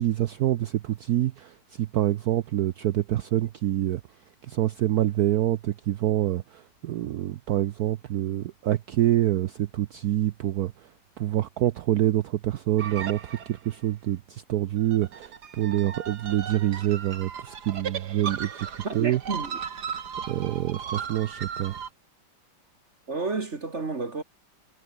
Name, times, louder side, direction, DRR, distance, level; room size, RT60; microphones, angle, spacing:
voice 1, 0.0-4.0 4.4-10.9 11.2-18.7 18.9-19.2 20.3-21.8, right 13 dB, 90° right, 0.8 m, -26 dB
sound 1, 12.8-13.8 14.8-21.9, right 7 dB, 50° right, 2.1 m, -36 dB
voice 2, 18.8-19.6 23.1-24.2, right 3 dB, 35° right, 1.9 m, -31 dB
omnidirectional pair, 2.4 m